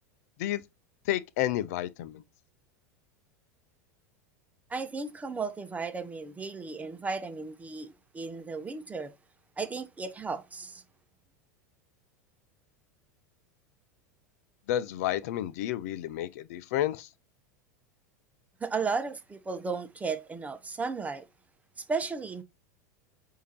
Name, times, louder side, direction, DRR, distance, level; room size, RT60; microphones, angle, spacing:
voice 1, 1.1-2.2 14.7-17.1, left 13 dB, 65° left, 0.6 m, -30 dB
voice 2, 4.7-9.1 9.6-10.8 18.6-21.2 21.8-22.4, right 4 dB, 15° right, 1.0 m, -34 dB
8.2 x 2.8 x 4.4 m
hypercardioid pair, 90°, 9 cm